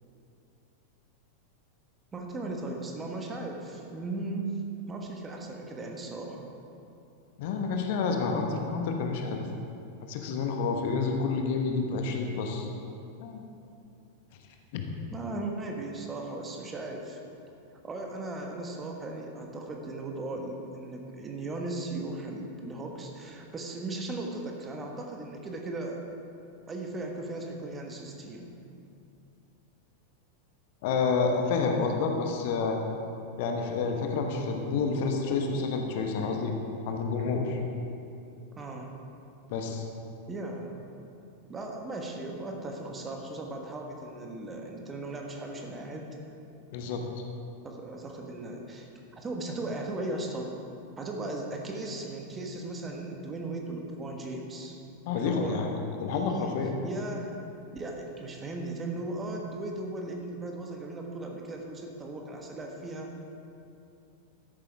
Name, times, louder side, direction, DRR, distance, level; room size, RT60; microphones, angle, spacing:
voice 1, 2.1-4.6 4.9-6.5 15.1-17.2 17.8-26.0 26.7-28.5 38.6-38.9 40.3-40.8 41.5-46.1 47.6-50.5 51.0-54.8 55.1-55.6 56.0-56.5 56.8-57.4 57.7-63.2, right 2 dB, 20° right, 1 dB, 1.4 m, -37 dB
voice 2, 7.4-9.4 10.0-12.7 13.2-13.4 14.7-14.9 30.8-32.8 33.4-36.5 36.9-37.6 39.5-39.8 46.7-47.0 55.1-55.7 56.0-56.7, left 4 dB, 50° left, 3 dB, 1.2 m, -29 dB
13.0 x 11.0 x 3.6 m, 2.7 s
figure-of-eight pair, 90°, 0 cm